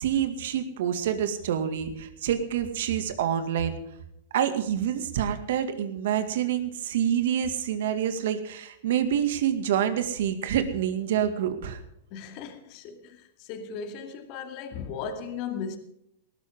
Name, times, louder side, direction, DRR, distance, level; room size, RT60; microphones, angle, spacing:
voice 1, 0.0-3.8 4.3-11.8, right 9 dB, 70° right, 2.2 m, -27 dB
voice 2, 12.1-15.8, left 6 dB, 50° left, 2.3 m, -37 dB
19.0 x 13.0 x 3.8 m
hypercardioid pair, 125°, 0 cm